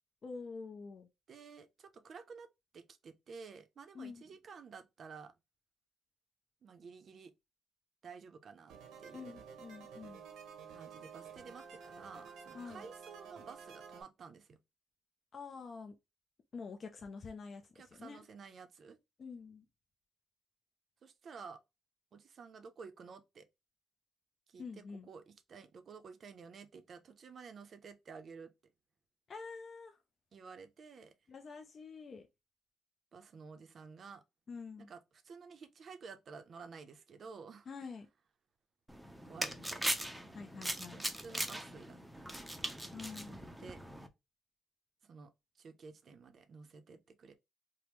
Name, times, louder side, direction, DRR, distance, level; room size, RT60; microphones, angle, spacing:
voice 1, 0.2-1.1 3.9-4.2 9.1-10.2 12.5-12.8 15.3-15.9 16.5-18.2 19.2-19.6 24.6-25.1 29.3-30.0 31.3-32.2 34.5-34.9 37.7-38.1 40.3-41.0 42.9-43.4, left 4 dB, 45° left, 0.5 m, -47 dB
voice 2, 1.3-2.5 2.7-5.3 6.6-7.3 8.0-9.4 10.7-14.6 17.7-19.0 21.0-21.6 22.1-23.5 24.5-28.5 30.3-31.1 33.1-34.2 34.8-37.7 39.2-39.9 40.9-42.5 43.2-43.8 45.0-45.3 45.6-47.3, right 5 dB, 55° right, 0.5 m, -52 dB
sound 1, 8.7-14.0, right 6 dB, 90° right, 0.8 m, -51 dB
sound 2, 38.9-44.1, right 1 dB, 5° right, 0.5 m, -40 dB
3.4 x 2.0 x 3.0 m
cardioid pair, 90°, 0 cm